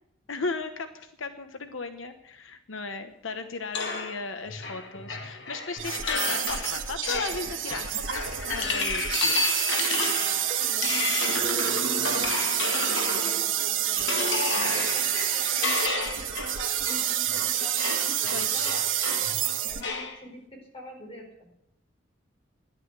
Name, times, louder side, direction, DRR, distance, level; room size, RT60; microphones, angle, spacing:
voice 1, 0.3-9.5 18.3-18.7, left 4 dB, 85° left, 8 dB, 1.1 m, -36 dB
sound 1, 3.7-13.5 14.0-20.2, left 4 dB, 65° left, 1.9 m, -31 dB
sound 2, 5.8-19.8, right 11 dB, 85° right, 1.4 m, -28 dB
voice 2, 10.5-21.5, left 1 dB, 30° left, 0 dB, 5.2 m, -46 dB
14.0 x 11.0 x 8.2 m, 0.80 s
head